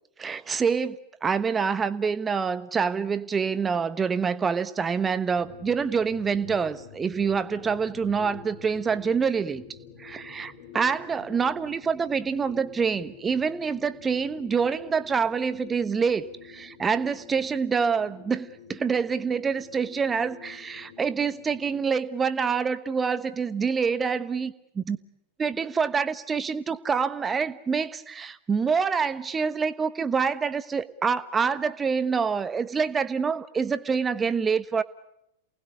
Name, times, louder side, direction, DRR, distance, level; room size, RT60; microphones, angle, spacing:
voice 1, 0.2-1.0 1.2-9.6 10.0-25.0 25.4-34.8, right 5 dB, 15° right, 14 dB, 1.2 m, -26 dB
sound 1, 5.3-21.8, left 7 dB, 50° left, 7.3 m, -48 dB
28.5 x 19.5 x 9.7 m, 0.82 s
figure-of-eight pair, 90°, 0 cm